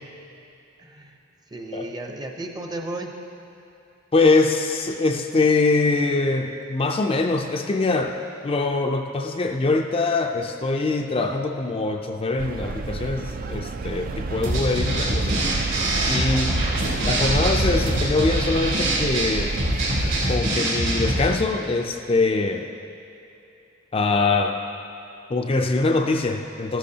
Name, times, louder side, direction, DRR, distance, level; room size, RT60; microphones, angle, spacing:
voice 1, 0.8-1.2 1.5-3.2 16.3-16.6, right 2 dB, 20° right, 3 dB, 0.7 m, -34 dB
voice 2, 4.1-8.2 8.4-15.4 16.1-16.5 17.1-19.5 20.3-22.6 23.9-24.6 25.3-26.8, left 3 dB, 30° left, 3 dB, 0.4 m, -23 dB
sound 1, 12.4-20.4, right 3 dB, 45° right, 0.4 m, -29 dB
sound 2, 14.4-21.3, right 1 dB, 70° right, 3.0 m, -24 dB
14.0 x 12.0 x 2.8 m, 2.7 s
head